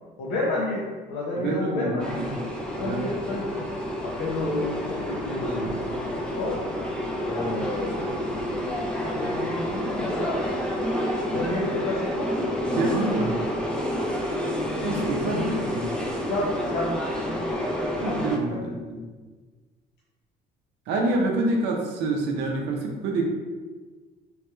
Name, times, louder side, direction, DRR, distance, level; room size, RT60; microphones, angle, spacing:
voice 1, 0.2-2.3 2.8-3.7 4.0-6.6 7.2-8.4 9.0-10.4 11.3-12.3 15.0-15.3 16.3-16.9 17.3-17.6 18.5-18.7, left 2 dB, 80° left, -5 dB, 0.6 m, -31 dB
voice 2, 1.4-2.5 2.8-3.1 11.3-11.4 12.7-13.4 14.8-15.9 18.0-19.0 20.9-23.3, right 2 dB, 85° right, 0 dB, 0.5 m, -27 dB
sound 1, 2.0-18.4, equal, 5° left, 0.4 m, -29 dB
3.1 x 2.9 x 2.2 m, 1.4 s
cardioid pair, 110°, 17 cm